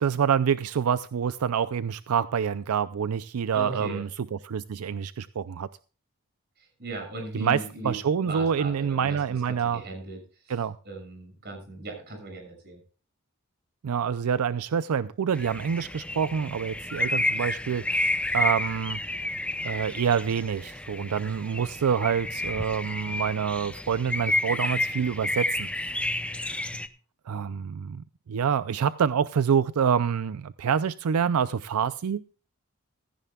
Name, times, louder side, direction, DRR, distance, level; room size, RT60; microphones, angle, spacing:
voice 1, 0.0-5.7 7.3-9.8 10.5-10.7 13.8-18.1 18.3-19.0 19.6-25.7 27.3-32.2, right 7 dB, 90° right, 15 dB, 0.4 m, -27 dB
voice 2, 3.5-4.0 6.8-8.0 8.2-10.2 10.8-12.8, right 2 dB, 50° right, 3 dB, 6.6 m, -37 dB
sound 1, 15.3-26.9, left 1 dB, 5° left, 0.6 m, -30 dB
16.0 x 14.5 x 2.3 m, 0.37 s
head